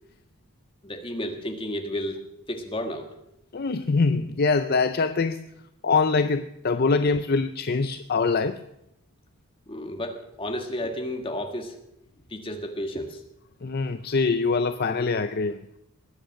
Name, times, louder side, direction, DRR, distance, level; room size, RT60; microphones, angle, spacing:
voice 1, 0.8-3.1 9.7-11.7 12.3-13.2, left 1 dB, 25° left, 4 dB, 1.7 m, -32 dB
voice 2, 3.5-5.5 5.8-8.6 13.6-15.6, left 4 dB, 45° left, 10 dB, 0.5 m, -24 dB
20.5 x 8.9 x 6.4 m, 0.82 s
head